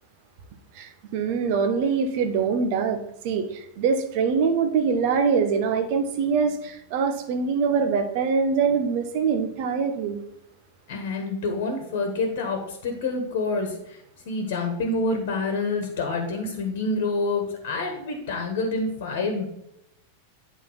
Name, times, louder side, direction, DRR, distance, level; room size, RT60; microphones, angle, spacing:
voice 1, 0.7-10.2, right 5 dB, 45° right, 8 dB, 1.0 m, -24 dB
voice 2, 10.9-14.0 14.2-19.5, left 3 dB, 50° left, 3 dB, 1.4 m, -27 dB
8.6 x 4.1 x 5.6 m, 0.78 s
figure-of-eight pair, 90°, 0 cm